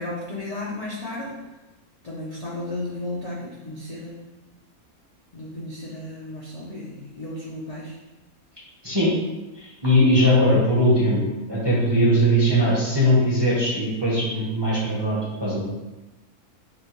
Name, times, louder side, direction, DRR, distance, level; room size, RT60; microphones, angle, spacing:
voice 1, 0.0-1.4 2.0-4.2 5.3-8.0, left 2 dB, 55° left, -5 dB, 0.4 m, -34 dB
voice 2, 9.5-15.6, equal, 25° right, -6 dB, 0.6 m, -20 dB
6.0 x 2.2 x 3.0 m, 1.1 s
omnidirectional pair, 1.6 m